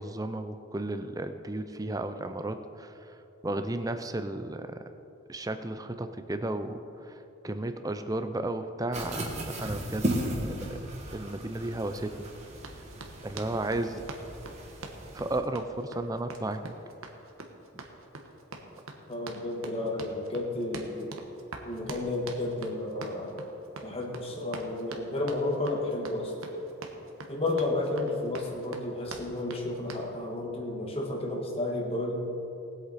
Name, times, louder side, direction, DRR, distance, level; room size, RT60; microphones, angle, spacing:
voice 1, 0.0-3.2 3.4-4.8 5.3-10.1 10.7-10.8 11.1-12.3 13.2-14.0 15.1-16.7, right 2 dB, 15° right, 9 dB, 0.5 m, -34 dB
sound 1, 8.9-15.4, right 1 dB, 35° right, 1.7 m, -36 dB
Run, 12.5-30.1, right 3 dB, 80° right, 1.2 m, -44 dB
voice 2, 19.1-21.1 21.6-23.4 23.8-26.3 27.3-32.3, left 2 dB, 30° left, 0 dB, 1.6 m, -32 dB
20.0 x 8.1 x 4.2 m, 2.9 s
head